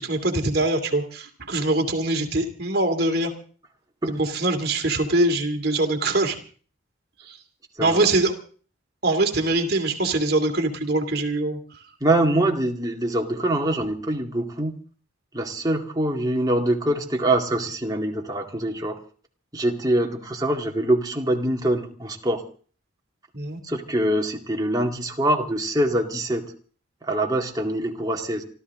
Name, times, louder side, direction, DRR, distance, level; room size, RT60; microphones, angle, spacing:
voice 1, 0.0-3.3 4.1-6.4 7.2-7.4 7.8-8.4 9.0-11.6 23.3-23.6, right 2 dB, 50° right, 3 dB, 2.7 m, -23 dB
voice 2, 7.8-8.1 12.0-14.8 15.3-19.0 19.5-22.4 23.6-26.4 27.0-28.4, right 1 dB, 20° right, 2 dB, 2.0 m, -24 dB
27.0 x 13.5 x 3.7 m, 0.41 s
head